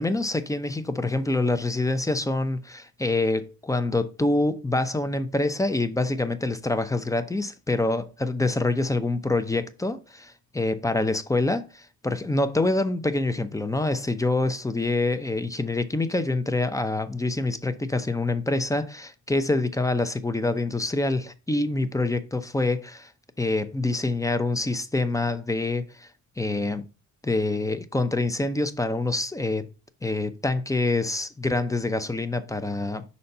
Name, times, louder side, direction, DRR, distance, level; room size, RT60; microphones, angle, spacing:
voice 1, 0.0-23.1 23.4-26.1 26.4-26.8 27.2-29.7 30.0-33.0, left 2 dB, 10° left, 0.7 m, -26 dB
5.7 x 4.2 x 5.3 m
cardioid pair, 100°, 33 cm